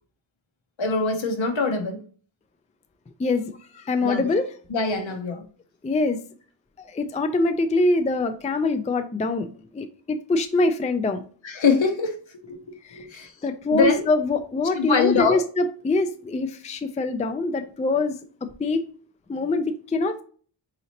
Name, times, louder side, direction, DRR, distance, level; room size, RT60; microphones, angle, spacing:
voice 1, 0.8-2.0 4.0-4.4 4.7-5.4 11.4-12.2 12.4-13.3 13.7-14.0 14.7-15.4, left 4 dB, 70° left, 0.8 m, -23 dB
voice 2, 3.2-4.5 5.8-6.2 6.9-9.5 9.7-11.2 12.9-13.0 13.4-18.2 18.6-18.8 19.3-19.7 19.9-20.2, left 2 dB, 15° left, 0.3 m, -24 dB
4.0 x 2.8 x 2.8 m
wide cardioid pair, 55°, 48 cm